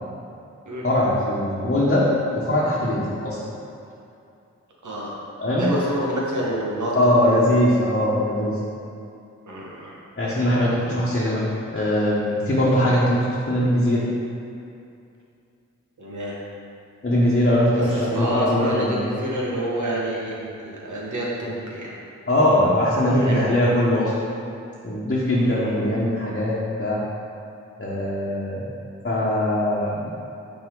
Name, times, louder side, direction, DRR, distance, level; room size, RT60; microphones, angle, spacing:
voice 1, 0.8-2.1 2.3-3.4 5.4-5.7 6.9-8.6 10.2-11.5 11.7-14.0 17.0-19.1 22.3-24.1 24.8-27.0 27.8-28.7 29.0-30.1, left 1 dB, 35° left, -7 dB, 1.1 m, -21 dB
voice 2, 4.8-5.1 5.6-7.5 9.5-10.0 16.0-16.4 17.7-21.9 23.0-23.6 25.3-25.9, equal, 70° right, -4 dB, 1.3 m, -28 dB
5.8 x 4.3 x 3.8 m, 2.6 s
cardioid pair, 40°, 31 cm